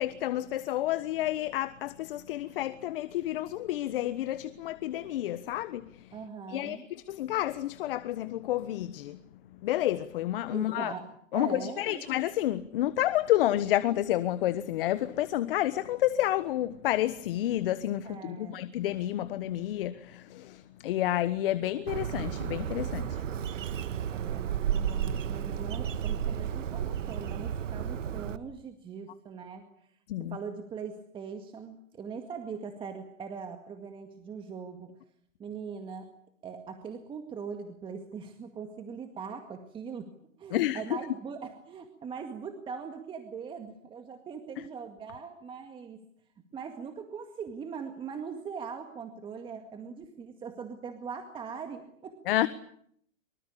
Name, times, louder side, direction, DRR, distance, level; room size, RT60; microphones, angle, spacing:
voice 1, 0.0-6.1 6.5-9.2 9.6-10.9 11.3-23.2 30.1-30.4 40.5-40.8 52.3-52.5, left 13 dB, 45° left, 1.3 m, -30 dB
voice 2, 6.1-6.9 10.5-12.0 18.0-18.6 24.1-29.7 30.2-34.9 35.4-36.1 36.4-40.1 40.4-46.1 46.5-52.2, right 6 dB, 10° right, 2.0 m, -41 dB
Bird, 21.9-28.4, right 9 dB, 65° right, 2.0 m, -32 dB
25.0 x 24.5 x 8.6 m
hypercardioid pair, 155°, 40 cm